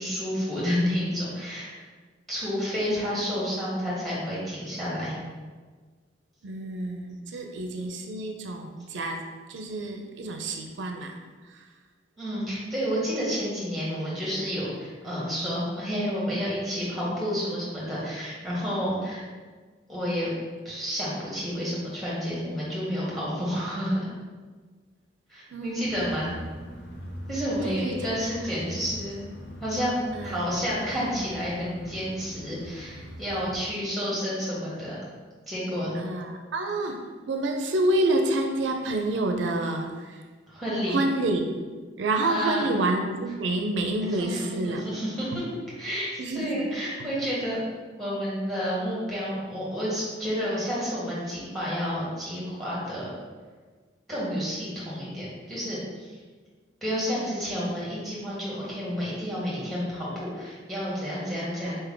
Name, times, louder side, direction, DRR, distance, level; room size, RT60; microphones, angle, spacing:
voice 1, 0.0-1.8 2.3-5.2 12.2-19.2 19.9-20.3 20.6-24.1 25.3-26.3 27.3-29.2 29.6-35.0 35.5-35.9 40.5-41.0 42.2-42.6 44.2-45.4 45.8-47.6 48.0-53.2 54.1-56.2 56.8-61.7, equal, ahead, -7 dB, 1.4 m, -30 dB
voice 2, 6.4-9.2 9.5-11.7 25.5-26.4 27.6-28.1 30.1-30.4 35.9-37.0 37.3-40.2 40.9-41.7 42.0-44.9 45.3-45.4 46.2-46.7, right 2 dB, 80° right, 4 dB, 0.4 m, -28 dB
sound 1, 25.8-33.6, equal, 70° left, 0.8 m, -42 dB
4.2 x 3.4 x 3.7 m, 1.4 s
head